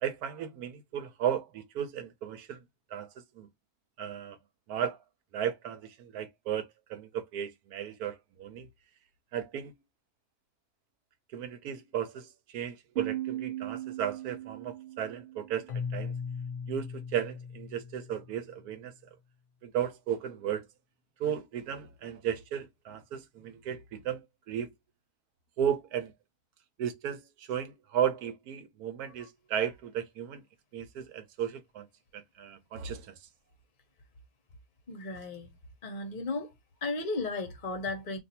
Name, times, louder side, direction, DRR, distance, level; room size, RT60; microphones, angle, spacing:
voice 1, 0.0-2.6 2.9-3.5 4.0-4.4 4.7-5.0 5.3-8.7 9.3-9.7 11.3-16.1 16.7-18.9 19.6-20.7 21.2-24.7 25.6-26.1 26.8-30.4 30.7-31.9 32.1-33.3, right 9 dB, 90° right, 1.2 m, -35 dB
Piano, 13.0-16.4, right 14 dB, 50° right, 1.1 m, -39 dB
Keyboard (musical), 15.7-18.6, left 6 dB, 65° left, 0.9 m, -38 dB
voice 2, 34.9-35.5 35.8-36.5 36.8-38.2, left 3 dB, 40° left, 0.7 m, -34 dB
2.6 x 2.6 x 4.1 m
omnidirectional pair, 1.6 m